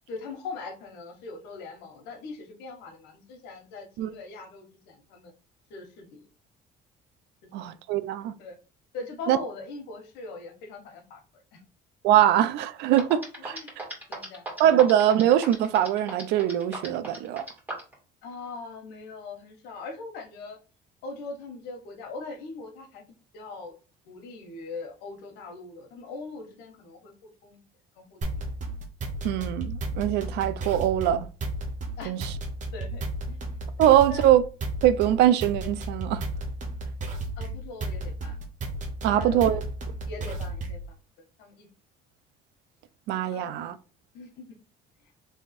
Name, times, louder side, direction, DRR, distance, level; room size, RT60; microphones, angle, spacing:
voice 1, 0.1-5.3 5.7-6.3 7.6-7.7 8.4-8.6 8.9-11.2 11.5-11.6 13.4-13.7 14.1-14.4 18.2-20.6 21.0-23.0 23.3-23.7 24.0-27.6 28.0-28.3 32.0-32.1 32.7-33.0 33.3-33.4 34.1-34.2 37.4-38.4 39.0-39.6 40.1-40.8 41.4-41.7 43.3-43.6 44.1-44.5, left 3 dB, 90° left, 1.2 m, -41 dB
voice 2, 7.5-8.3 9.3-9.4 12.0-13.6 14.6-17.4 29.2-31.3 32.1-32.2 33.8-34.4 34.8-36.2 39.0-39.6 43.1-43.8, right 11 dB, 85° right, 0.5 m, -22 dB
sound 1, 13.0-17.9, right 1 dB, 10° right, 2.2 m, -36 dB
sound 2, 28.2-40.9, right 2 dB, 45° right, 1.3 m, -33 dB
3.4 x 3.4 x 4.2 m
cardioid pair, 110°, 17 cm